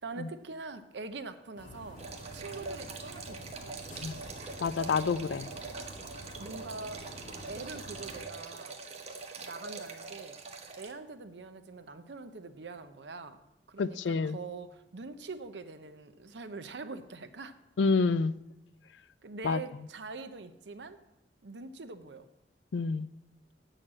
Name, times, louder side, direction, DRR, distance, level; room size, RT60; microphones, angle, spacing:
voice 1, 0.0-2.0 2.3-3.7 6.4-7.1 7.5-8.8 9.4-10.3 10.8-13.4 13.7-17.6 19.2-21.0 21.4-22.3, right 3 dB, 75° right, 10 dB, 0.7 m, -43 dB
sound 1, 1.6-8.2, equal, 50° left, 1.9 m, -48 dB
sound 2, 2.0-10.9, right 4 dB, 35° right, 0.9 m, -43 dB
voice 2, 4.6-5.5 13.8-14.4 17.8-18.3 19.4-19.6 22.7-23.1, left 4 dB, 85° left, 17 dB, 0.4 m, -28 dB
7.8 x 6.5 x 7.4 m, 0.91 s
head